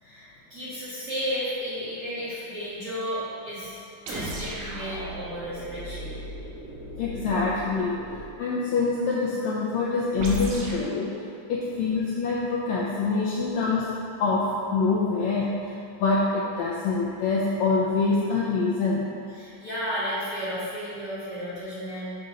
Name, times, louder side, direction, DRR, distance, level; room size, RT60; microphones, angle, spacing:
voice 1, 0.0-3.8 4.1-6.1 19.4-22.2, equal, 40° right, -12 dB, 1.7 m, -33 dB
sound 1, 4.1-8.4 10.2-10.9, left 1 dB, 80° right, 2.7 m, -36 dB
voice 2, 7.0-8.0 8.4-11.2 11.5-13.9 14.2-15.7 16.0-19.1, left 4 dB, 85° left, -5 dB, 1.6 m, -25 dB
6.8 x 3.9 x 5.0 m, 2.5 s
omnidirectional pair, 3.8 m